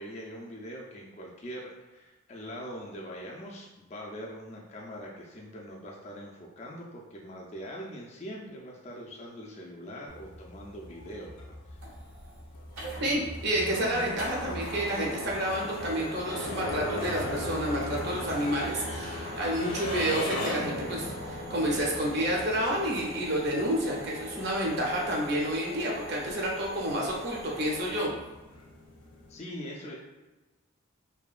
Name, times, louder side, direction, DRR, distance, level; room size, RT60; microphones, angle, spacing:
voice 1, 0.0-11.8 29.3-30.0, equal, 30° left, -2 dB, 0.3 m, -42 dB
sound 1, 10.1-29.4, left 1 dB, 85° left, 0.5 m, -39 dB
sound 2, 11.7-27.9, equal, 90° right, 0.8 m, -43 dB
voice 2, 13.0-28.1, right 1 dB, 50° right, -2 dB, 0.5 m, -30 dB
2.7 x 2.2 x 2.3 m, 1.1 s
head